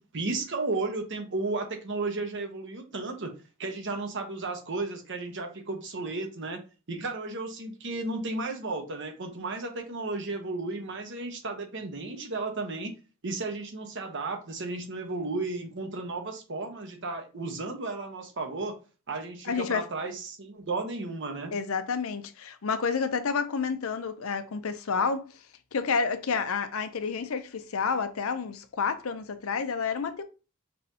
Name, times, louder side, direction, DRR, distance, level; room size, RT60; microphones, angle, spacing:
voice 1, 0.0-3.3 3.6-6.6 6.9-12.9 13.2-18.7 19.1-21.5, right 3 dB, 55° right, 1.0 m, -34 dB
voice 2, 19.4-19.9 21.5-25.4 25.7-30.2, left 5 dB, 70° left, 0.6 m, -29 dB
5.5 x 3.1 x 2.8 m
head